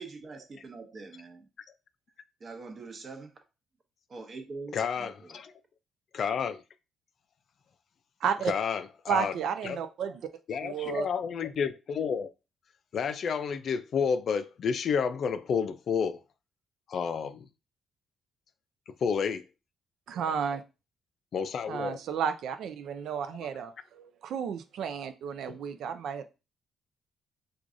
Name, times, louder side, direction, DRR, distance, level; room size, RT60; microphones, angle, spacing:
voice 1, 0.0-1.5 2.4-3.3 4.1-5.4, right 4 dB, 40° right, 0.9 m, -44 dB
voice 2, 4.7-5.5 6.1-6.6 8.5-9.3 9.6-9.8 10.5-12.3 12.9-16.2 16.9-17.5 19.0-19.4 21.3-22.0 25.5-25.6, left 6 dB, 60° left, 0.4 m, -30 dB
voice 3, 8.2-8.5 9.1-10.2 10.6-11.1 20.1-20.6 21.7-26.3, right 7 dB, 75° right, 0.4 m, -32 dB
4.6 x 2.4 x 2.5 m
cardioid pair, 90°, 0 cm